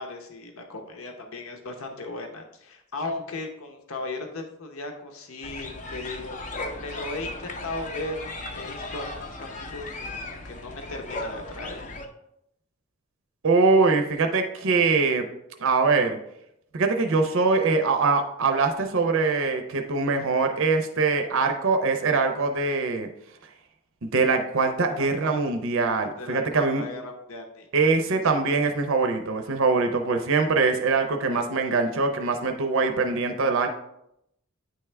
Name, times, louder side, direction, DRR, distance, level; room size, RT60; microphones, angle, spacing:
voice 1, 0.0-6.4 6.7-11.9 24.9-25.4 26.2-28.2, left 2 dB, 70° left, 4 dB, 0.8 m, -37 dB
sound 1, 5.4-12.1, left 2 dB, 35° left, 0.6 m, -36 dB
voice 2, 13.4-15.3 15.6-16.2 16.7-23.1 24.0-26.8 27.7-33.7, right 4 dB, 65° right, 5 dB, 0.6 m, -23 dB
9.1 x 3.5 x 3.3 m, 0.79 s
head